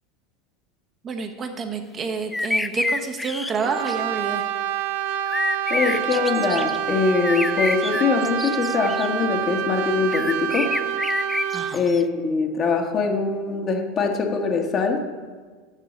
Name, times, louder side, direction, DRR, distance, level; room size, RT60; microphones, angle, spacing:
voice 1, 1.0-4.4 11.5-11.9, right 5 dB, 30° right, 4 dB, 1.0 m, -29 dB
sound 1, 2.3-3.9 5.3-6.8 7.2-9.1 10.1-12.0, left 2 dB, 10° left, 0.4 m, -27 dB
Brass instrument, 3.6-11.8, right 9 dB, 65° right, 0.6 m, -27 dB
voice 2, 5.7-10.7 11.7-15.0, left 4 dB, 35° left, 3 dB, 1.3 m, -23 dB
7.4 x 6.1 x 6.7 m, 1.5 s
figure-of-eight pair, 80°, 0 cm